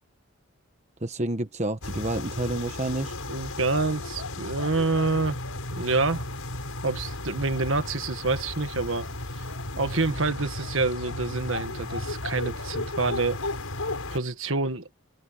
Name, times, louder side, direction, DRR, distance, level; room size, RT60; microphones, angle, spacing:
voice 1, 1.0-3.1, right 1 dB, 30° right, 1.2 m, -29 dB
sound 1, 1.8-14.2, left 2 dB, 75° left, 5.8 m, -34 dB
voice 2, 3.3-5.4 5.8-6.3 6.8-9.1 9.4-9.5 9.8-13.4 14.1-14.9, right 3 dB, 60° right, 1.7 m, -27 dB
head